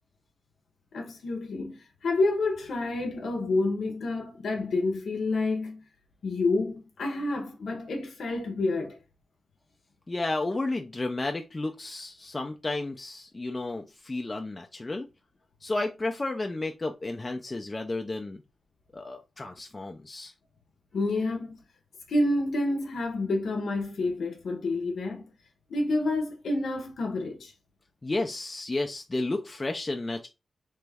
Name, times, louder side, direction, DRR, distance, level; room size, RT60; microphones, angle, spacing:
voice 1, 0.9-5.8 6.2-9.0 20.9-21.6 22.1-25.3 25.7-27.5, left 2 dB, 80° left, 0.7 m, -29 dB
voice 2, 10.1-15.1 15.6-18.4 18.9-20.3 28.0-30.3, left 2 dB, 25° left, 0.3 m, -32 dB
3.0 x 2.3 x 3.3 m
wide cardioid pair, 105°, 0 cm